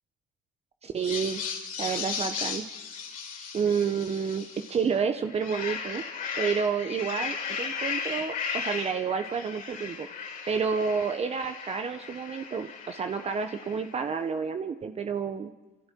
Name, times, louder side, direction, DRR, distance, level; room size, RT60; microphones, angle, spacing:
voice 1, 0.8-1.4 1.8-2.7 3.5-6.0 6.4-10.1 10.5-15.5, right 6 dB, 40° right, 7 dB, 1.2 m, -30 dB
sound 1, 1.0-4.9 5.3-14.0, left 6 dB, 55° left, 4.8 m, -36 dB
29.0 x 27.5 x 4.7 m, 1.1 s
cardioid pair, 110°, 17 cm